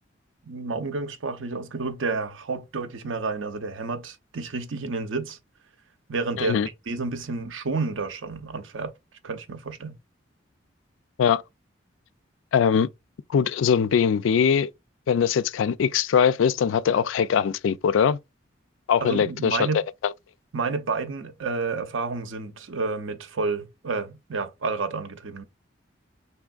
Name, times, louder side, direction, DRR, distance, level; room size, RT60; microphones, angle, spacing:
voice 1, 0.5-5.4 6.1-8.9 9.2-10.0 19.0-19.8 20.5-25.4, right 4 dB, 85° right, 0.7 m, -30 dB
voice 2, 6.4-6.7 11.2-11.4 12.5-12.9 13.3-14.7 15.1-18.2 18.9-19.7, left 7 dB, 80° left, 0.3 m, -21 dB
4.3 x 3.4 x 2.4 m
head